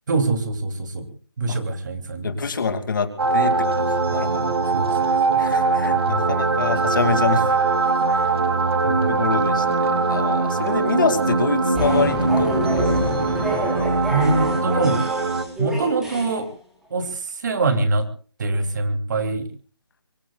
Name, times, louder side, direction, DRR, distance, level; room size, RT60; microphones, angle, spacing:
voice 1, 0.1-1.1 1.4-2.4 4.7-5.4 8.1-8.3 8.8-9.2 14.1-15.0 15.6-16.5 16.9-18.1 18.4-19.5, right 3 dB, 45° right, 7 dB, 3.1 m, -24 dB
voice 2, 2.2-4.6 5.4-7.6 9.1-13.2, left 4 dB, 50° left, 9 dB, 2.6 m, -26 dB
sound 1, 3.2-15.4, right 4 dB, 70° right, 2.6 m, -21 dB
sound 2, 11.7-16.5, left 1 dB, 5° right, 3.5 m, -27 dB
24.5 x 24.5 x 2.4 m, 0.40 s
hypercardioid pair, 165°, 14 cm